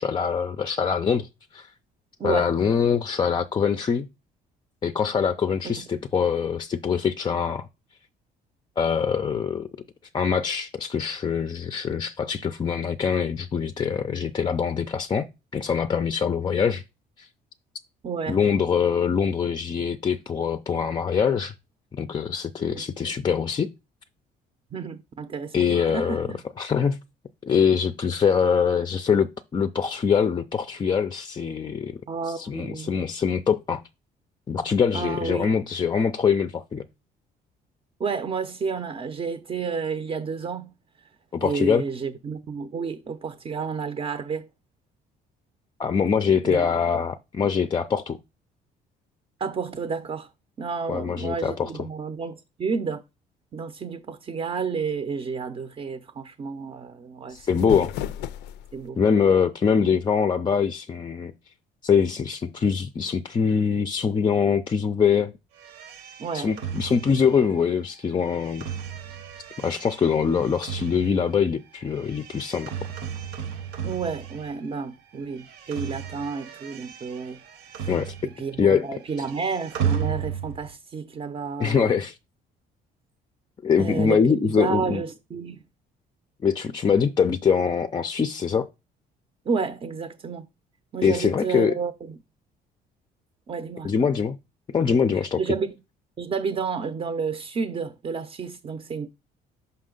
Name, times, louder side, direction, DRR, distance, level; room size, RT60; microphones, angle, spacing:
voice 1, 0.0-1.7 2.2-4.1 4.8-7.7 8.8-9.7 10.1-15.3 15.5-16.8 17.2-17.3 18.3-21.5 21.9-23.7 25.5-27.0 27.4-32.0 32.3-33.8 34.5-36.8 41.3-41.8 45.8-48.2 50.9-51.7 57.3-57.9 59.0-61.3 61.8-65.4 66.3-68.7 69.6-72.7 77.9-78.1 78.6-79.0 81.6-82.2 83.6-85.0 86.4-88.7 91.0-91.7 93.8-94.4 94.7-95.4, left 6 dB, 25° left, 0.4 m, -23 dB
voice 2, 18.0-18.4 22.7-22.8 24.7-26.4 32.1-32.9 34.9-35.5 38.0-40.7 41.4-44.5 46.4-46.7 49.4-50.3 50.6-53.0 53.5-57.7 58.7-59.0 59.8-59.9 66.2-66.5 73.8-77.4 77.7-77.9 78.2-81.9 83.8-85.6 89.5-90.5 90.9-92.1 93.5-93.9 95.4-95.7 96.2-99.1, right 5 dB, 35° right, 0.6 m, -31 dB
sound 1, 57.3-58.9, left 11 dB, 90° left, 0.4 m, -34 dB
sound 2, 65.6-74.8 75.1-78.6 78.8-80.7, right 8 dB, 85° right, 1.1 m, -35 dB
5.7 x 5.4 x 3.8 m
cardioid pair, 110°, 17 cm